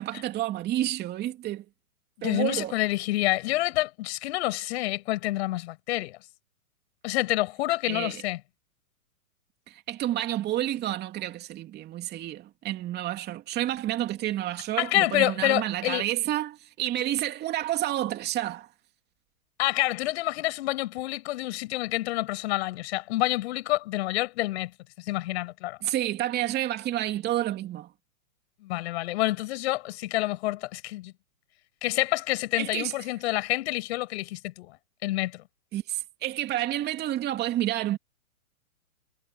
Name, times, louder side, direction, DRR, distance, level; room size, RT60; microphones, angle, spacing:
voice 1, 0.0-1.6 2.2-2.7 7.9-8.2 9.7-18.7 25.8-27.9 32.6-32.9 35.7-38.0, right 13 dB, 20° right, 2.8 m, -29 dB
voice 2, 2.2-6.2 7.0-8.4 14.8-16.0 19.6-24.7 25.1-25.8 28.6-31.1 31.8-34.7 35.0-35.4, left 18 dB, 45° left, 6.0 m, -28 dB
hypercardioid pair, 130°, 44 cm